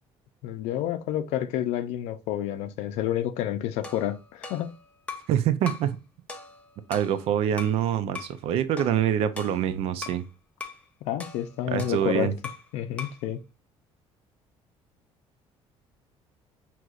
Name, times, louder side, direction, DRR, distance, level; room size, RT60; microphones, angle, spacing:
voice 1, 0.4-4.7 11.1-12.3 12.7-13.4, left 11 dB, 90° left, 0.5 m, -29 dB
sound 1, 3.8-5.4 5.7-5.9 6.3-7.8 8.1-8.4 8.8-10.3 10.6-10.8 11.2-12.7 13.0-13.3, left 4 dB, 10° left, 0.6 m, -41 dB
voice 2, 5.3-6.0 6.9-10.2 11.7-12.3, right 10 dB, 60° right, 0.5 m, -25 dB
6.2 x 3.0 x 2.4 m
cardioid pair, 165°, 11 cm